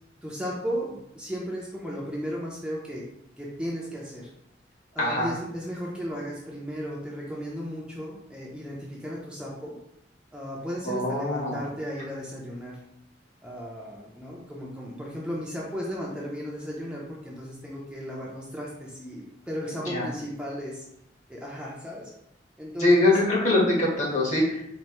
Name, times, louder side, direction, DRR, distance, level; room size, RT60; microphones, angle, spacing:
voice 1, 0.2-3.0 3.4-4.3 4.9-9.8 10.3-12.8 13.4-20.8 21.3-22.1 22.6-23.1, equal, 5° right, -4 dB, 0.6 m, -35 dB
voice 2, 5.0-5.3 10.8-11.6 19.8-20.1 22.8-24.6, left 2 dB, 45° left, -4 dB, 1.2 m, -23 dB
4.4 x 2.6 x 2.9 m, 0.76 s
head